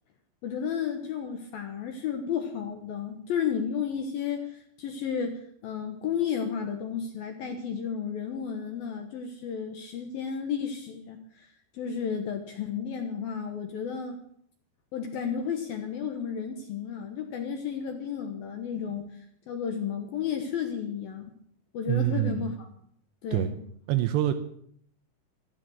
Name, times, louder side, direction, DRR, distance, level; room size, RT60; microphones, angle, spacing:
voice 1, 0.4-11.5 11.7-14.2 14.9-19.1 19.5-21.3 21.7-22.7 23.2-23.6, left 7 dB, 70° left, 4 dB, 2.4 m, -32 dB
voice 2, 21.9-22.5 23.3-23.5 23.9-24.3, right 14 dB, 80° right, 8 dB, 2.7 m, -25 dB
15.0 x 13.0 x 6.5 m, 0.65 s
omnidirectional pair, 5.6 m